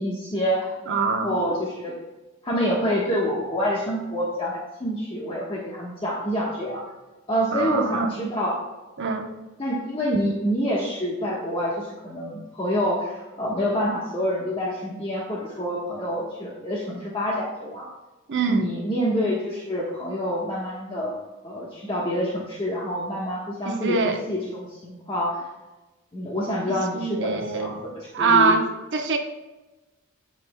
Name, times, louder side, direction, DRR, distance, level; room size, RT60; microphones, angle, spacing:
voice 1, 0.0-0.8 1.0-2.0 2.4-6.8 7.3-8.6 9.6-17.9 18.5-24.0 24.3-25.4 26.1-28.6, equal, 25° left, -4 dB, 1.3 m, -27 dB
voice 2, 0.9-1.4 7.5-8.2 9.0-9.3 18.3-18.7 23.6-24.2 26.7-27.8 28.1-28.6 28.9-29.2, right 4 dB, 60° right, 4 dB, 1.0 m, -23 dB
17.0 x 6.0 x 2.3 m, 1.1 s
head